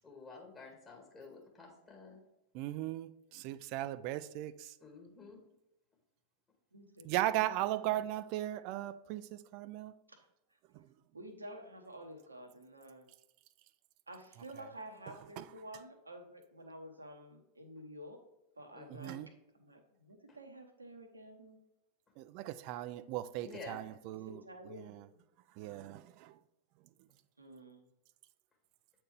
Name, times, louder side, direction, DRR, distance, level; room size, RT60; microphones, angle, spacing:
voice 1, 0.0-2.2 4.8-5.4 18.7-19.2 23.4-23.8, left 4 dB, 20° left, 1.8 m, -51 dB
voice 2, 2.5-4.7 7.0-9.9 10.7-10.8 18.9-19.3 22.2-24.4 24.7-25.0 25.6-26.4, right 14 dB, 45° right, 0.4 m, -37 dB
voice 3, 6.7-7.4 7.7-7.9 10.1-10.2 11.1-13.1 14.1-18.2 18.6-19.2 19.5-21.6 23.5-23.7 24.2-24.9 27.4-27.9, right 1 dB, 80° right, 0.9 m, -50 dB
8.5 x 4.4 x 3.3 m
figure-of-eight pair, 90°, 0 cm